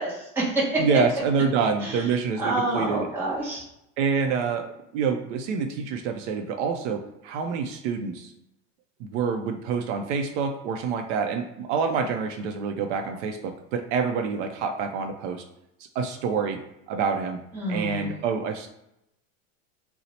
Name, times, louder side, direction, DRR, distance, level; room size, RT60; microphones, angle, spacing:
voice 1, 0.0-0.8 1.8-2.1 2.4-3.6 17.5-18.1, right 2 dB, 5° right, -7 dB, 0.7 m, -27 dB
voice 2, 0.8-3.1 4.0-4.7 4.9-8.3 9.0-15.4 16.0-16.6 16.9-17.4 17.7-18.7, right 5 dB, 65° right, 5 dB, 0.5 m, -27 dB
2.8 x 2.0 x 4.0 m, 0.83 s
supercardioid pair, 165°, 39 cm